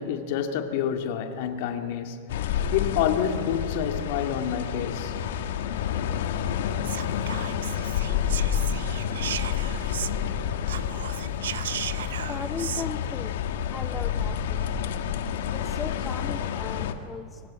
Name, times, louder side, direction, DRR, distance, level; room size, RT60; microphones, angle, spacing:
voice 1, 0.0-5.2, left 8 dB, 60° left, 2.2 m, -28 dB
sound 1, 2.3-16.9, left 8 dB, 75° left, 1.6 m, -29 dB
Whispering, 6.8-10.4 10.6-12.9, right 11 dB, 90° right, 0.6 m, -36 dB
voice 2, 12.3-13.4 13.7-14.6 15.5-17.4, left 5 dB, 15° left, 0.6 m, -37 dB
24.0 x 18.0 x 8.7 m
supercardioid pair, 150°, 0 cm